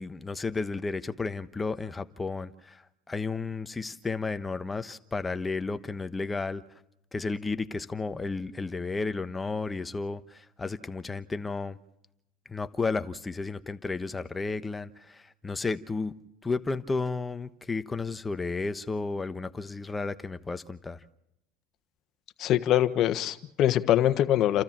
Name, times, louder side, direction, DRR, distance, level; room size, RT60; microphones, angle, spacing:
voice 1, 0.0-6.6 7.1-11.8 12.5-16.1 16.4-21.0, left 3 dB, 15° left, 11 dB, 1.1 m, -33 dB
voice 2, 22.4-24.6, left 12 dB, 55° left, 9 dB, 1.3 m, -23 dB
29.5 x 13.5 x 7.5 m, 0.84 s
supercardioid pair, 100°, 0 cm